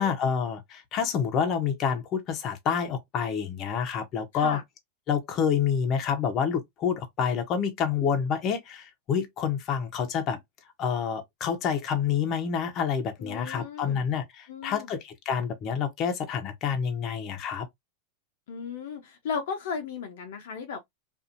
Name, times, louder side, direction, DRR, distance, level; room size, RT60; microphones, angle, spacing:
voice 1, 0.0-4.6 5.1-10.4 10.8-17.7, left 7 dB, 40° left, 0.9 m, -28 dB
voice 2, 13.2-14.0 14.5-14.9 18.5-20.8, left 6 dB, 70° left, 0.8 m, -35 dB
2.6 x 2.6 x 2.5 m
hypercardioid pair, 110°, 0 cm